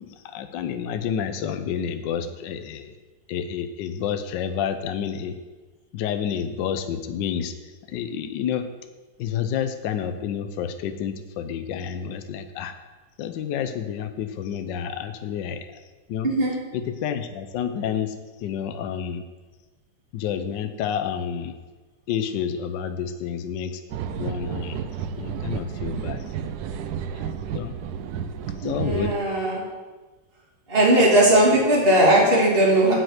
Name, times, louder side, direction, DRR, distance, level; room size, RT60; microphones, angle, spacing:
voice 1, 0.0-2.9 3.3-5.4 5.9-7.5 7.9-8.7 9.2-12.7 13.2-15.8 16.1-16.3 16.7-19.2 20.1-21.6 22.1-23.8 24.2-24.8 25.2-26.3 27.1-27.7 28.6-29.1, left 8 dB, 70° left, 8 dB, 1.2 m, -29 dB
sound 1, 23.9-29.1, right 7 dB, 80° right, 0.9 m, -31 dB
voice 2, 28.6-29.6 30.7-32.9, right 1 dB, 25° right, -6 dB, 2.9 m, -18 dB
8.9 x 6.6 x 8.0 m, 1.3 s
omnidirectional pair, 2.4 m